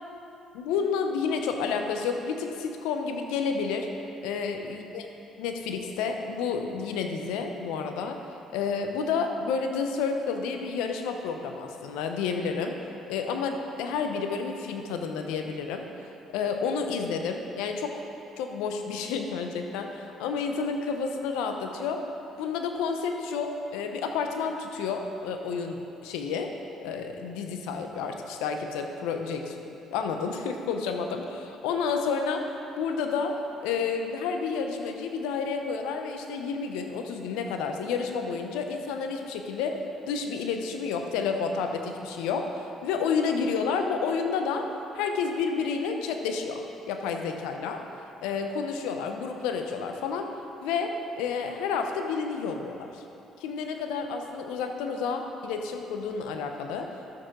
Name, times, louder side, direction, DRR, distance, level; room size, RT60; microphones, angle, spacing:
voice 1, 0.5-3.9 4.2-5.1 5.4-8.2 8.5-12.8 13.1-15.9 16.3-18.0 18.4-22.0 22.4-26.5 26.8-29.5 29.9-32.5 32.8-33.3 33.6-42.5 42.8-44.7 44.9-47.8 48.2-50.3 50.6-53.0 53.4-56.9, left 5 dB, 80° left, 5 dB, 0.8 m, -30 dB
12.5 x 6.8 x 3.8 m, 2.8 s
supercardioid pair, 65°, 0 cm